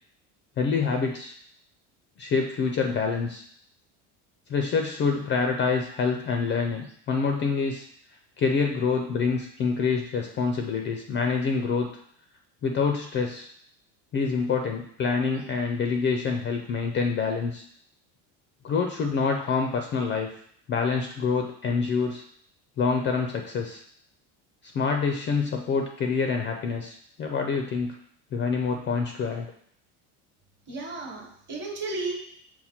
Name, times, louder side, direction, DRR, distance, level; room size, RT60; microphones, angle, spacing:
voice 1, 0.6-1.3 2.2-3.4 4.5-7.9 8.4-11.9 12.6-13.5 14.1-17.7 18.6-20.3 20.7-22.2 22.8-23.8 24.7-28.0 28.3-29.5, left 5 dB, 30° left, 3 dB, 0.4 m, -26 dB
voice 2, 30.7-32.1, right 3 dB, 30° right, 0 dB, 1.1 m, -33 dB
5.7 x 2.2 x 4.2 m, 0.64 s
cardioid pair, 120°, 37 cm